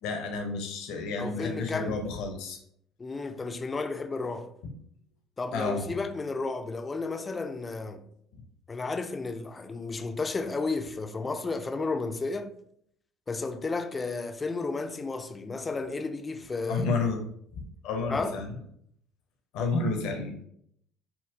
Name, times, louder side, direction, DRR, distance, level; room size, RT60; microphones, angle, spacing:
voice 1, 0.0-2.6 5.5-5.9 8.3-8.4 16.7-17.2 17.8-18.5 19.5-20.3, left 4 dB, 65° left, 0.6 m, -30 dB
voice 2, 1.2-2.0 3.0-4.5 5.4-8.0 8.7-12.5 13.3-16.9 18.1-18.4, left 3 dB, 25° left, 0.4 m, -32 dB
3.7 x 2.1 x 2.7 m
hypercardioid pair, 60°, 0 cm